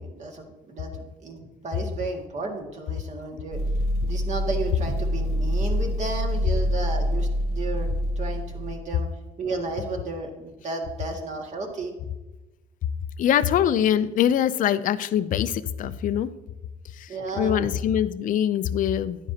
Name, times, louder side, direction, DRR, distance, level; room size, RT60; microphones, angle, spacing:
voice 1, 0.0-3.6 4.0-9.1 9.4-11.9 17.1-17.7, right 3 dB, 45° right, 2 dB, 2.0 m, -33 dB
sound 1, 3.5-8.8, equal, 65° right, 1.2 m, -26 dB
voice 2, 13.2-16.3 17.0-19.2, left 10 dB, 50° left, 14 dB, 0.5 m, -23 dB
10.5 x 9.7 x 2.8 m, 1.1 s
cardioid pair, 110°, 17 cm